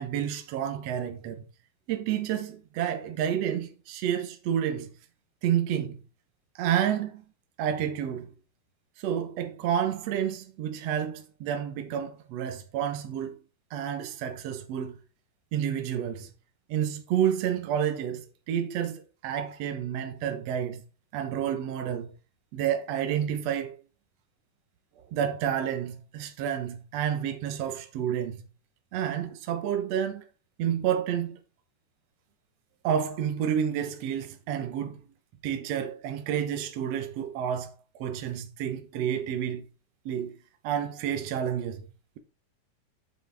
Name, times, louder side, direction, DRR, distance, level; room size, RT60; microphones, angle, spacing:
voice 1, 0.0-1.5 1.9-4.9 5.4-6.0 6.6-7.2 7.6-8.3 9.0-13.4 13.7-15.0 15.5-16.3 16.7-20.8 21.1-22.1 22.5-23.8 25.1-28.4 28.9-30.2 30.6-31.4 32.8-35.0 35.4-39.7 40.1-40.4 40.6-41.9, right 9 dB, 60° right, 1.9 m, -30 dB
8.2 x 7.2 x 3.5 m
omnidirectional pair, 3.9 m